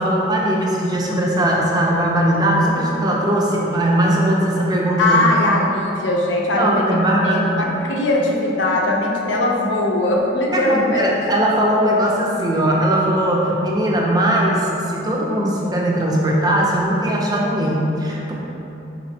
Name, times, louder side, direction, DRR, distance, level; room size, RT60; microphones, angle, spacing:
voice 1, 0.0-5.2 6.6-7.5 10.5-18.3, right 1 dB, 20° right, -2 dB, 0.5 m, -19 dB
voice 2, 5.0-11.2, left 1 dB, 65° left, -1 dB, 0.6 m, -20 dB
4.7 x 4.2 x 2.7 m, 3.0 s
head